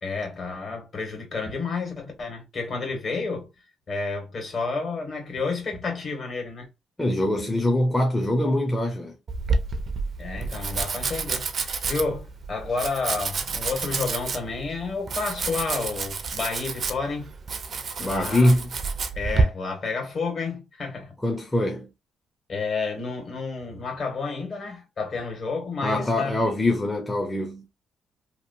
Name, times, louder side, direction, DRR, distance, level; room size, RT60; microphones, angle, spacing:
voice 1, 0.0-3.5 3.9-6.7 10.2-17.3 18.0-18.5 19.1-21.1 22.5-26.4, left 4 dB, 50° left, 1.5 m, -30 dB
voice 2, 7.0-9.1 18.0-18.6 21.2-21.9 25.8-27.7, left 1 dB, 15° left, 0.6 m, -23 dB
Domestic sounds home sounds, 9.3-19.4, right 4 dB, 50° right, 0.4 m, -29 dB
2.9 x 2.3 x 2.6 m
cardioid pair, 90°, 0 cm